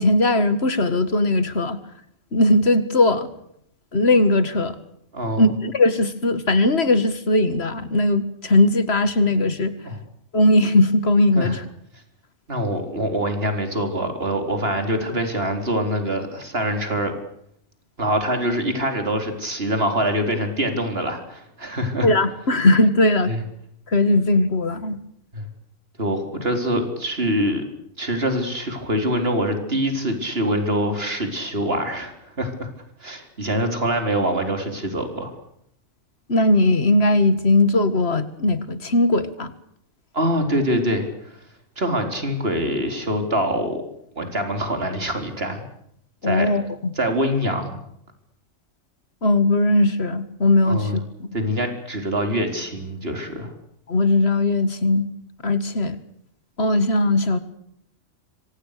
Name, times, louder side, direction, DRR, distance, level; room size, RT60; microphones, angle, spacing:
voice 1, 0.0-1.8 2.3-3.3 3.9-4.8 5.4-9.7 10.3-11.6 22.0-23.3 23.9-25.0 36.3-39.5 46.2-46.6 49.2-51.0 53.9-55.1 55.4-56.0 56.6-57.4, left 2 dB, 50° left, 13 dB, 2.1 m, -19 dB
voice 2, 5.1-5.5 9.8-10.0 11.3-11.6 12.5-17.1 18.0-22.1 23.3-23.4 25.3-25.4 26.0-27.6 28.0-32.7 33.0-35.3 40.1-41.4 41.8-43.8 44.2-45.6 46.2-46.5 47.0-47.8 50.6-51.0 51.3-53.5, equal, 50° right, 6 dB, 4.4 m, -24 dB
26.0 x 25.5 x 6.7 m, 0.72 s
omnidirectional pair, 1.4 m